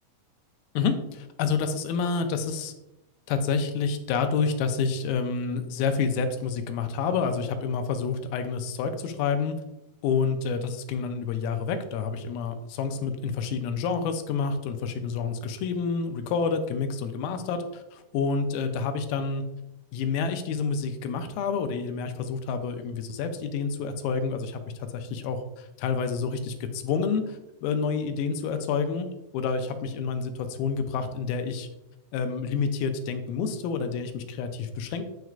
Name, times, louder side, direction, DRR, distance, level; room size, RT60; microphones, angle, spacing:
voice 1, 0.8-2.7 3.3-9.6 10.0-19.4 19.9-29.1 29.3-31.7 32.1-35.0, left 5 dB, 80° left, 7 dB, 2.4 m, -28 dB
9.1 x 4.6 x 2.4 m, 0.93 s
omnidirectional pair, 4.5 m